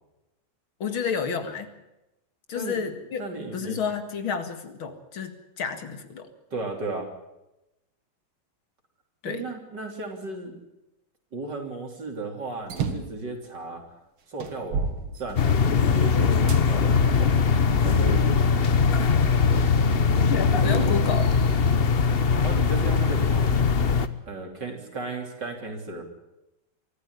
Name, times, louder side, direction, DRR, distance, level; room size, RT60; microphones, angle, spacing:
voice 1, 0.8-1.7 2.5-3.2 3.5-6.3 9.2-9.5 20.6-21.3, left 6 dB, 70° left, 8 dB, 2.7 m, -30 dB
voice 2, 3.2-3.8 6.5-7.1 9.2-10.6 11.3-13.8 14.3-17.5 17.8-18.3 20.5-21.0 22.4-23.6 24.3-26.0, right 2 dB, 50° right, 3 dB, 4.1 m, -34 dB
sound 1, 12.6-13.2 13.9-14.0 14.4-15.8 16.5-16.6 17.4-18.4, right 5 dB, 85° right, 2.7 m, -32 dB
sound 2, 15.4-24.1, left 5 dB, 55° left, 0.6 m, -21 dB
24.0 x 14.0 x 9.7 m, 0.93 s
omnidirectional pair, 2.3 m